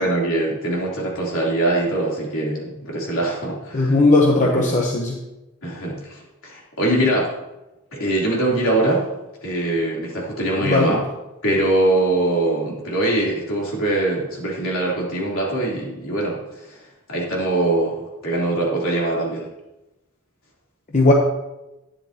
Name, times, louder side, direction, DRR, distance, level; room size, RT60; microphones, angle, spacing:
voice 1, 0.0-4.0 4.4-4.8 5.6-7.3 7.9-9.1 9.4-11.0 11.4-16.8 17.1-19.5, right 1 dB, 70° left, -4 dB, 3.4 m, -22 dB
voice 2, 3.7-5.2 10.6-11.0 20.9-21.1, left 2 dB, 35° left, 0 dB, 1.0 m, -17 dB
11.5 x 9.8 x 2.9 m, 0.98 s
head